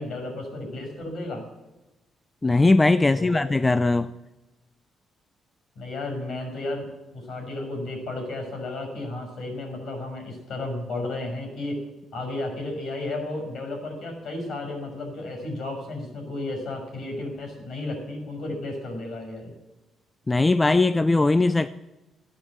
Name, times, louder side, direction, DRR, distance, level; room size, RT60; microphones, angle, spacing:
voice 1, 0.0-1.4 3.1-3.4 5.8-6.8 7.1-11.8 12.1-19.5, left 2 dB, 65° left, 6.0 m, -33 dB
voice 2, 2.4-4.1 20.3-21.7, left 2 dB, 20° left, 0.4 m, -20 dB
14.0 x 8.8 x 7.8 m
cardioid pair, 90°, 0 cm